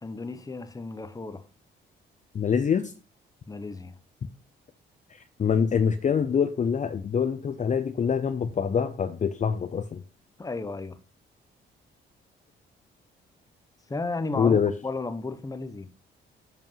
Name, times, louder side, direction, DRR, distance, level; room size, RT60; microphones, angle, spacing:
voice 1, 0.0-1.4 3.5-3.9 10.4-11.0 13.9-15.9, left 3 dB, 15° left, 1.0 m, -34 dB
voice 2, 2.3-2.9 5.1-10.0 14.3-14.7, left 7 dB, 40° left, 0.7 m, -25 dB
7.5 x 5.2 x 5.6 m
cardioid pair, 90°, 20 cm